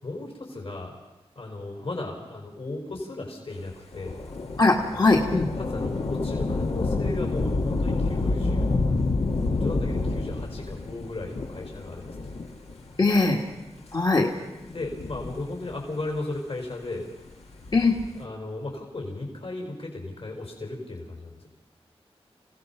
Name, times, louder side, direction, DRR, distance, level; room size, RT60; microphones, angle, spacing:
voice 1, 0.0-0.9 1.3-4.2 5.6-9.1 9.5-12.3 14.6-17.1 18.1-21.5, left 2 dB, 65° left, 0 dB, 4.6 m, -36 dB
Thunder / Rain, 3.9-12.9 13.6-13.7 14.7-15.9 17.5-18.2, left 3 dB, 85° left, 1.9 m, -28 dB
voice 2, 4.6-5.5 13.0-13.4 13.9-14.3 17.7-18.0, left 3 dB, 45° left, 0 dB, 1.8 m, -20 dB
27.0 x 17.0 x 5.8 m, 1.1 s
wide cardioid pair, 110°, 10 cm